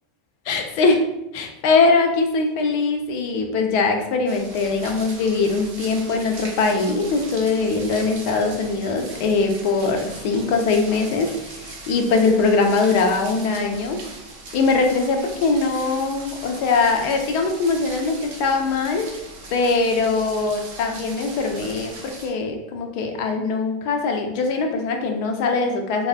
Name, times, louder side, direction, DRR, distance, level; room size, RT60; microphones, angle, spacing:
voice 1, 0.5-1.0 1.3-14.0 14.5-19.1 19.5-26.1, left 4 dB, 55° left, 4 dB, 0.5 m, -21 dB
sound 1, 4.3-22.3, right 2 dB, 55° right, 0.7 m, -39 dB
3.3 x 2.0 x 2.3 m, 0.87 s
hypercardioid pair, 85°, 0 cm